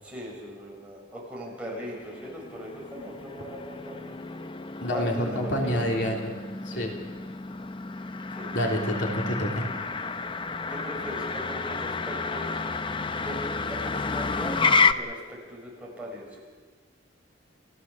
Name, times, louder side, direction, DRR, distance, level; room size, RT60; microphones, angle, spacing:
voice 1, 0.0-4.2 4.9-6.3 6.7-7.0 8.3-8.5 10.7-12.5 13.2-13.4 13.6-16.4, equal, 5° right, -3 dB, 6.6 m, -39 dB
Motor vehicle (road), 1.8-14.9, left 4 dB, 25° left, 0.6 m, -30 dB
voice 2, 4.8-6.3 6.7-6.9 8.5-9.6, equal, 70° left, 0 dB, 3.2 m, -28 dB
28.5 x 16.0 x 7.3 m, 1.5 s
head